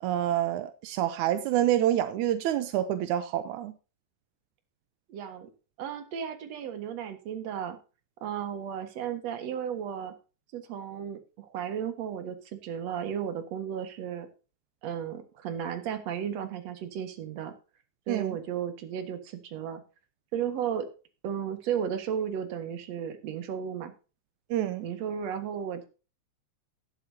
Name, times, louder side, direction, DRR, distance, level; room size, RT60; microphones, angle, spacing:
voice 1, 0.0-3.7 18.1-18.4 24.5-24.9, right 12 dB, 85° right, 2.2 m, -27 dB
voice 2, 5.1-5.5 5.8-7.8 8.2-10.1 10.5-14.3 14.8-17.5 18.1-19.8 20.3-20.9 21.2-23.9 24.8-25.8, right 8 dB, 65° right, 2.6 m, -34 dB
19.0 x 8.4 x 2.8 m
omnidirectional pair, 3.3 m